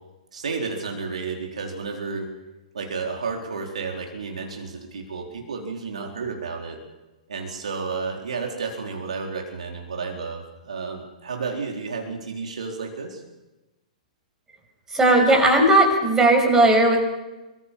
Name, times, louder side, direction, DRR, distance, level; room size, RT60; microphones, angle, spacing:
voice 1, 0.3-2.3 2.7-6.8 7.3-13.2, right 4 dB, 65° right, 2 dB, 4.1 m, -31 dB
voice 2, 14.9-17.0, right 1 dB, 10° right, 2 dB, 6.4 m, -17 dB
27.0 x 23.5 x 5.7 m, 1.0 s
figure-of-eight pair, 110°, 4 cm